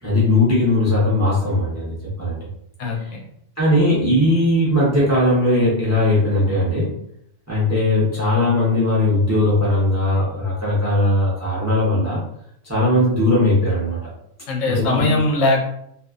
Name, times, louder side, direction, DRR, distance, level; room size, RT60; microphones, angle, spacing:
voice 1, 0.0-2.4 3.6-7.0 7.5-12.2 12.6-14.0 14.6-15.2, left 1 dB, 20° right, -6 dB, 0.5 m, -19 dB
voice 2, 2.8-3.2 14.5-15.6, left 2 dB, 90° left, 1 dB, 1.1 m, -20 dB
2.6 x 2.3 x 2.3 m, 0.74 s
omnidirectional pair, 1.3 m